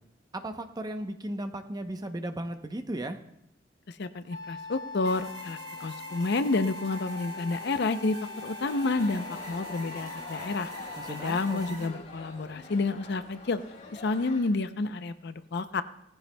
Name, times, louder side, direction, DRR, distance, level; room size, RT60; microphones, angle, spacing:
voice 1, 0.3-3.2 11.0-11.9, right 1 dB, 20° right, 7 dB, 0.7 m, -36 dB
voice 2, 3.9-10.7 11.1-13.6 13.9-15.8, left 3 dB, 60° left, 11 dB, 0.6 m, -30 dB
Wind instrument woodwind instrument, 4.3-11.9, left 4 dB, 85° left, 2.4 m, -42 dB
sound 1, 5.1-11.9, right 2 dB, 40° right, 2.8 m, -45 dB
sound 2, 8.6-14.5, left 2 dB, 40° left, 3.8 m, -46 dB
19.0 x 15.0 x 2.2 m, 0.80 s
head